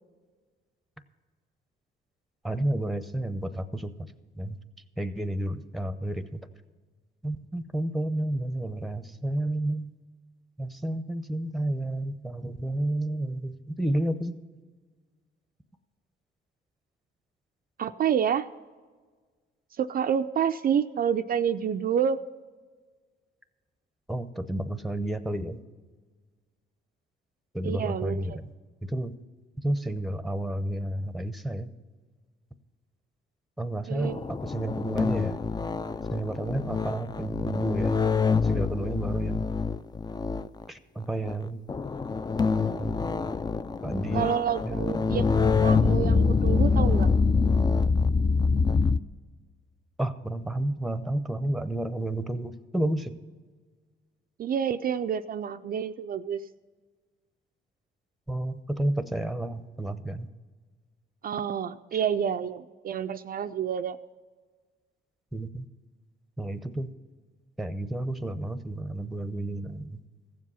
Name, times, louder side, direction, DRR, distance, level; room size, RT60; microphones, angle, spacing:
voice 1, 2.4-3.9 4.3-4.6 5.0-6.5 7.2-9.9 10.6-14.4 24.1-25.6 27.5-28.4 28.8-29.1 29.6-31.7 33.6-35.4 36.1-38.0 38.4-39.5 40.7-41.6 42.8-43.1 43.8-44.3 44.6-45.0 50.0-53.2 58.3-60.3 65.3-65.7 66.4-66.9 67.6-70.0, right 1 dB, ahead, 11 dB, 0.7 m, -31 dB
voice 2, 17.8-18.5 19.8-22.2 27.6-28.4 33.9-34.2 44.1-45.3 45.6-47.1 54.4-56.4 61.2-64.0, right 8 dB, 50° right, 8 dB, 0.4 m, -28 dB
sound 1, 34.0-40.6 41.3-41.4 41.7-49.0, left 4 dB, 20° left, 0.4 m, -25 dB
15.5 x 7.5 x 5.6 m, 1.4 s
cardioid pair, 90°, 20 cm